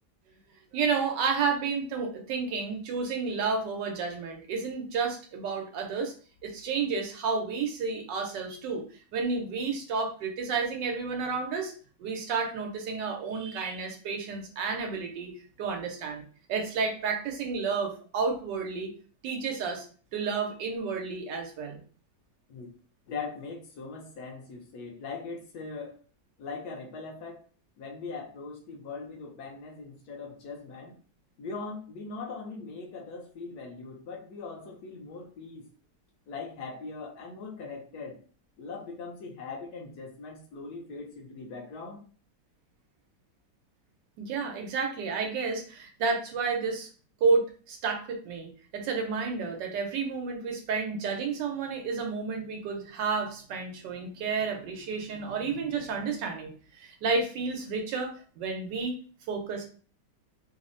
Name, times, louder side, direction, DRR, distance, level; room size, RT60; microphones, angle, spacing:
voice 1, 0.7-6.1 6.4-8.8 9.1-11.7 12.0-15.3 15.6-16.2 16.5-18.9 19.2-19.8 20.1-21.8 44.2-46.9 47.2-59.0 59.3-59.6, right 4 dB, 90° right, 4 dB, 1.3 m, -31 dB
voice 2, 23.1-26.0 26.4-27.4 27.8-31.0 31.4-35.6 36.3-38.2 38.6-42.0, left 4 dB, 70° left, 1 dB, 1.1 m, -40 dB
3.4 x 2.0 x 2.5 m, 0.40 s
omnidirectional pair, 1.9 m